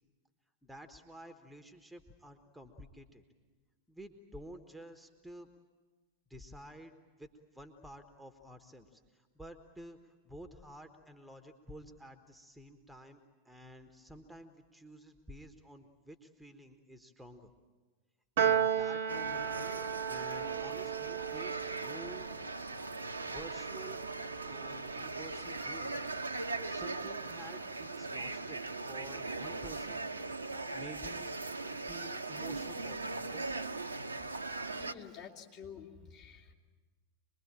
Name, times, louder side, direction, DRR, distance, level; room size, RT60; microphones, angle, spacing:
voice 1, 0.6-3.2 3.9-5.5 6.3-13.2 13.4-17.5 18.4-19.5 19.8-22.3 23.2-24.0 24.5-26.0 26.3-30.0 30.7-31.3 31.8-33.5, right 1 dB, ahead, 7 dB, 1.4 m, -51 dB
Piano, 18.4-24.9, right 9 dB, 55° right, 1.0 m, -35 dB
sound 1, 19.1-34.9, right 3 dB, 80° right, 1.0 m, -39 dB
voice 2, 34.7-36.5, left 7 dB, 40° left, -1 dB, 3.1 m, -50 dB
26.0 x 21.5 x 8.8 m, 1.4 s
figure-of-eight pair, 90°, 0 cm